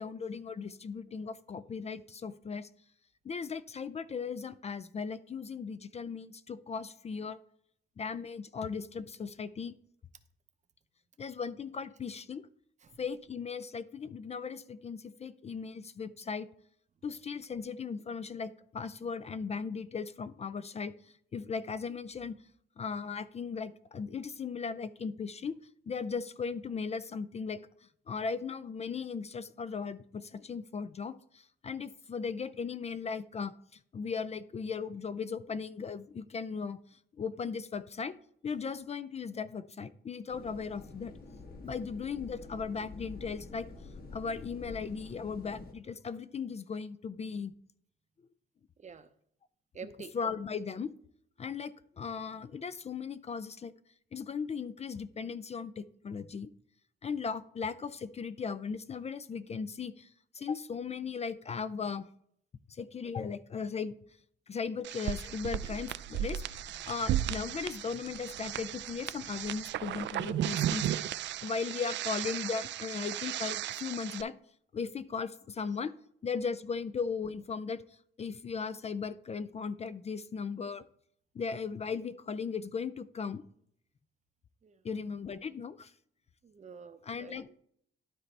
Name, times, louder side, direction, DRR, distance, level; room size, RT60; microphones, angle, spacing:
voice 1, 0.0-2.7 3.2-7.4 8.0-9.8 11.2-12.4 13.0-16.5 17.0-22.3 22.8-25.6 25.9-27.6 28.1-33.5 33.9-38.1 38.4-41.2 41.6-43.7 44.1-47.5 50.1-50.9 51.4-53.7 54.1-56.5 57.0-62.1 62.7-63.9 64.5-74.3 74.7-75.9 76.2-77.8 78.2-80.8 81.3-83.4 84.8-85.9 87.0-87.5, left 5 dB, 35° left, 15 dB, 0.4 m, -37 dB
sound 1, 40.3-45.7, left 3 dB, 50° left, 1.6 m, -48 dB
voice 2, 48.8-49.1 49.7-50.1 84.6-84.8 86.4-87.5, right 6 dB, 35° right, 11 dB, 0.8 m, -48 dB
sound 2, 64.8-74.2, right 12 dB, 65° right, 0.4 m, -35 dB
12.0 x 4.1 x 3.3 m, 0.68 s
cardioid pair, 90°, 20 cm